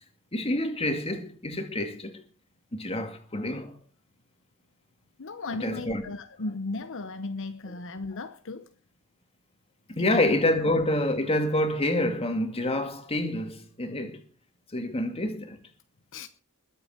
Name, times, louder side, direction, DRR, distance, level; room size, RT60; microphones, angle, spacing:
voice 1, 0.3-2.2 2.7-3.7 5.6-6.0 9.9-14.2 14.7-15.6, left 1 dB, 25° left, 2.3 m, -27 dB
voice 2, 5.2-8.7 10.0-10.3 16.1-16.3, left 3 dB, 60° left, 0.9 m, -36 dB
21.0 x 8.3 x 5.0 m
head